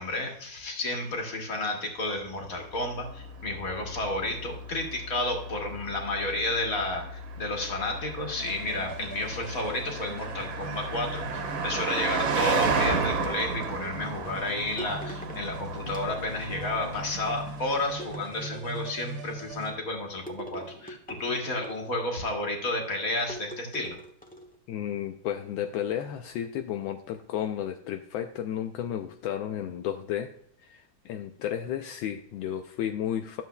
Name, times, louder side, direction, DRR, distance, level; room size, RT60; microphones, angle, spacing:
voice 1, 0.0-24.0, left 2 dB, 45° left, 2 dB, 2.1 m, -31 dB
Car passing by, 2.3-18.1, right 4 dB, 80° right, 1.9 m, -34 dB
sound 1, 8.4-19.7, right 2 dB, 30° right, 1.4 m, -42 dB
sound 2, 12.2-13.5 14.8-15.4 15.9-16.6 18.0-18.9 20.3-22.0 23.3-24.6, equal, 5° left, 0.9 m, -43 dB
voice 2, 24.7-30.3 30.6-33.4, left 10 dB, 80° left, 6 dB, 1.3 m, -33 dB
12.5 x 7.5 x 2.3 m, 0.68 s
omnidirectional pair, 2.1 m